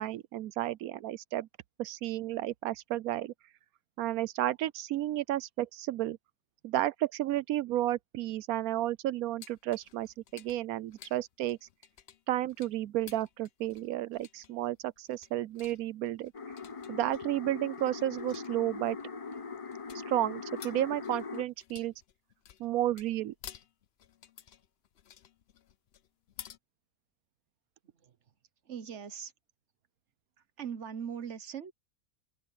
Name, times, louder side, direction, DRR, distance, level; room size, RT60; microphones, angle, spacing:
voice 1, 0.0-1.5 1.8-3.3 4.0-6.2 6.6-11.6 12.3-16.3 16.9-19.0 20.1-21.9 22.6-23.3, right 13 dB, 90° right, 1.1 m, -32 dB
sound 1, 9.4-26.6, left 9 dB, 55° left, 0.9 m, -54 dB
sound 2, 16.3-21.4, left 5 dB, 30° left, 0.7 m, -41 dB
voice 2, 27.9-28.3 28.6-29.3 30.4-31.7, right 8 dB, 55° right, 1.4 m, -41 dB
omnidirectional pair, 1.5 m